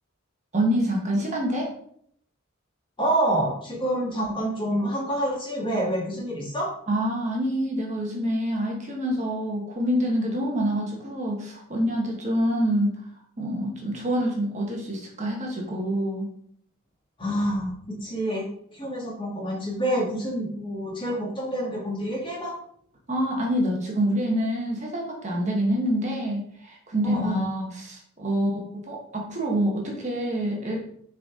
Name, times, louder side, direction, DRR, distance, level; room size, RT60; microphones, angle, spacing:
voice 1, 0.5-1.7 6.9-13.0 13.4-16.3 23.1-30.8, equal, 35° right, -1 dB, 1.2 m, -26 dB
voice 2, 3.0-6.7 17.2-18.5 18.7-22.5 27.0-27.4, right 1 dB, 25° left, -3 dB, 1.9 m, -27 dB
6.6 x 4.1 x 3.6 m, 0.65 s
head